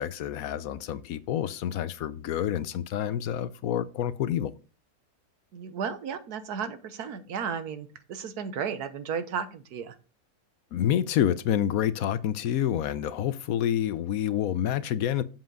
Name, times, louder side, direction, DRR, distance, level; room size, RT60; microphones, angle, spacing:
voice 1, 0.0-4.5 10.7-15.2, left 10 dB, 75° left, 1.0 m, -28 dB
voice 2, 5.5-9.9, right 7 dB, 90° right, 1.5 m, -34 dB
7.6 x 7.3 x 3.8 m
omnidirectional pair, 1.6 m